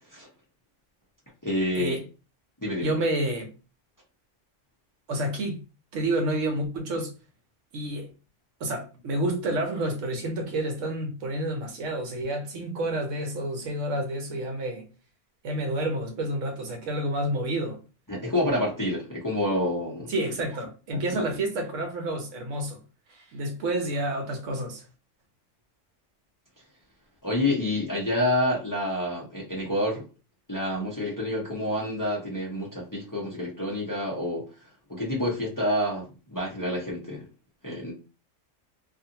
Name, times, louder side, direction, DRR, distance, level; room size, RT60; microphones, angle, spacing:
voice 1, 1.4-2.0 2.6-2.9 18.1-20.1 20.9-21.3 27.2-30.0 30.5-34.5 34.9-37.3 37.6-37.9, left 1 dB, 20° left, 0.7 m, -28 dB
voice 2, 2.8-3.5 5.1-5.6 5.9-7.1 7.7-8.1 8.6-14.9 15.4-17.8 20.1-22.8 23.1-24.8, right 1 dB, 75° right, 1.0 m, -29 dB
2.5 x 2.4 x 2.7 m
omnidirectional pair, 1.3 m